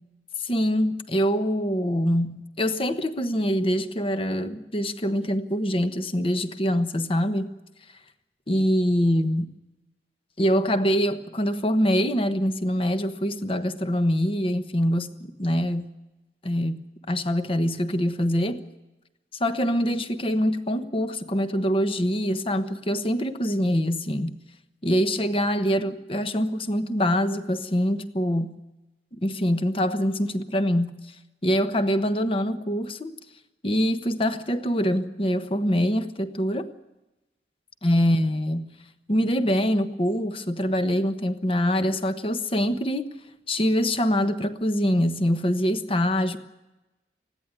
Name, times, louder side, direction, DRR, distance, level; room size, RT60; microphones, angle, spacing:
voice 1, 0.4-7.5 8.5-9.5 10.4-15.9 16.4-18.6 19.4-24.3 24.8-28.6 29.2-31.0 31.4-33.1 33.6-36.7 37.8-38.7 39.1-43.1 43.5-46.4, equal, 30° left, 10 dB, 1.2 m, -24 dB
20.0 x 15.5 x 9.8 m, 1.0 s
head